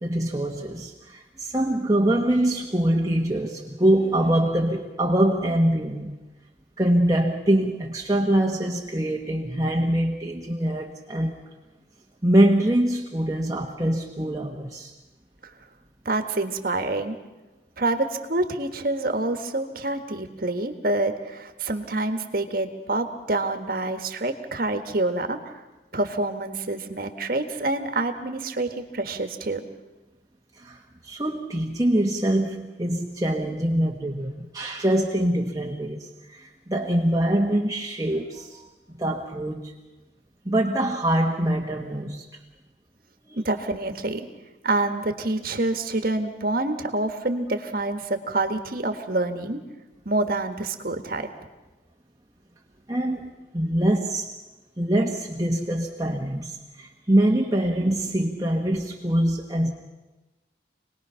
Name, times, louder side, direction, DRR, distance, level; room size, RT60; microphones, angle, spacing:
voice 1, 0.0-6.1 6.8-11.4 12.2-14.9 30.6-38.7 39.0-39.7 40.4-42.3 43.3-43.4 52.9-54.4 54.8-59.7, right 1 dB, 20° right, 0 dB, 1.3 m, -24 dB
voice 2, 16.1-17.2 17.8-25.6 25.9-29.7 43.4-44.3 44.6-49.6 50.1-51.3, right 2 dB, 50° right, 6 dB, 1.7 m, -27 dB
27.0 x 19.5 x 5.7 m, 1.1 s
head